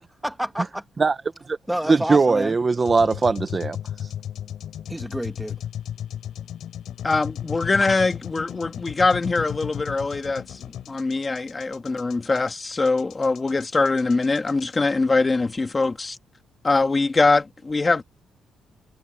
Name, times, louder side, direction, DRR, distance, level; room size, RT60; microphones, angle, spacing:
voice 1, 0.2-0.8 1.7-2.6 4.9-5.6, equal, 5° right, 1.3 m, -28 dB
voice 2, 1.9-3.8, right 4 dB, 25° right, 0.9 m, -20 dB
sound 1, 2.9-14.8, left 10 dB, 65° left, 3.3 m, -35 dB
voice 3, 7.0-16.2 16.6-18.0, left 3 dB, 20° left, 1.8 m, -22 dB
cardioid pair, 155°, 0 cm